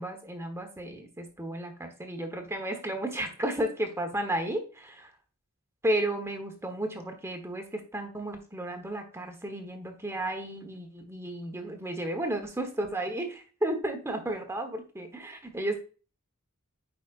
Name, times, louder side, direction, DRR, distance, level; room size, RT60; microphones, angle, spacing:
voice 1, 0.0-5.1 5.8-15.8, right 1 dB, 10° right, 5 dB, 1.1 m, -33 dB
9.2 x 5.0 x 2.5 m, 0.35 s
head